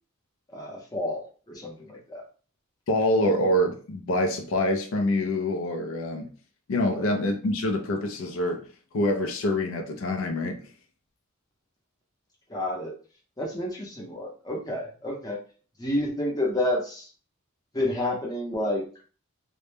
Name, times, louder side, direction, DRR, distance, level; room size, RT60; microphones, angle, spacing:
voice 1, 0.5-2.2 6.9-7.1 12.5-12.9 13.4-15.4 15.8-17.1 17.7-18.9, left 1 dB, 20° left, 0.6 m, -30 dB
voice 2, 2.9-6.3 6.7-8.7 8.9-10.7, left 1 dB, 70° left, 0.4 m, -26 dB
2.1 x 2.0 x 3.1 m
head